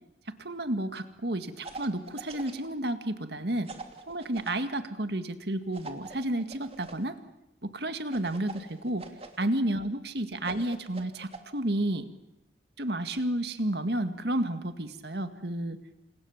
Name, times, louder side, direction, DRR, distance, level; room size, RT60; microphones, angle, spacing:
voice 1, 0.4-3.7 4.1-7.2 7.6-9.0 9.4-12.1 12.8-15.8, right 1 dB, 60° right, 9 dB, 2.0 m, -31 dB
sound 1, 1.6-2.7 3.7-4.6 5.7-7.0 8.1-9.5 10.4-11.4, right 3 dB, 35° right, 2.8 m, -44 dB
29.5 x 28.0 x 7.3 m, 0.90 s
head